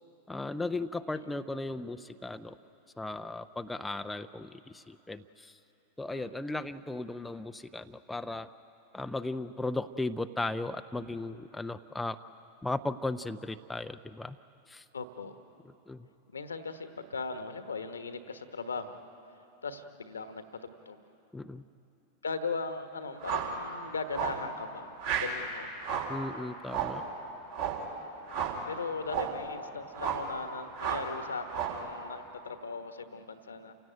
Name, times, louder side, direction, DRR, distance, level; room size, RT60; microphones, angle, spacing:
voice 1, 0.3-2.5 3.0-5.5 6.0-8.5 8.9-12.2 12.6-14.4 14.7-14.8 15.9-16.1 21.3-21.6 26.1-27.0, left 2 dB, 5° left, 8 dB, 0.6 m, -36 dB
voice 2, 14.9-15.3 16.3-19.0 19.6-21.0 22.2-25.7 28.7-33.7, left 4 dB, 75° left, 9 dB, 1.3 m, -38 dB
sound 1, 23.2-23.6 24.1-24.5 25.0-25.4 25.8-26.2 26.7-27.0 27.5-27.9 28.3-28.6 29.0-29.4 29.9-30.3 30.8-31.1 31.5-31.9, right 7 dB, 55° right, 3.9 m, -33 dB
28.5 x 16.5 x 9.2 m, 3.0 s
figure-of-eight pair, 90°, 0 cm